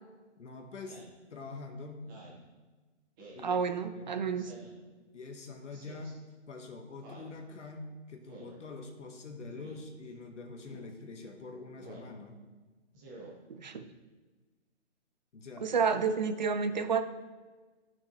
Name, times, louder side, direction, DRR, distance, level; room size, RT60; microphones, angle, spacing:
voice 1, 0.4-1.0 1.3-2.0 3.3-3.6 3.9-4.1 5.1-6.2 6.5-12.4 15.3-15.7, left 3 dB, 80° left, 3 dB, 1.4 m, -45 dB
Speech synthesizer, 0.8-1.2 2.0-2.4 3.2-3.5 4.4-4.8 5.7-6.1 7.0-7.3 8.3-8.6 9.5-9.8 10.6-10.9 11.8-12.1 12.9-13.3, right 2 dB, 15° right, 1.1 m, -50 dB
voice 2, 3.4-4.5 13.5-13.9 15.6-17.0, right 5 dB, 40° right, 10 dB, 0.5 m, -30 dB
13.0 x 6.2 x 3.1 m, 1.3 s
hypercardioid pair, 160°, 36 cm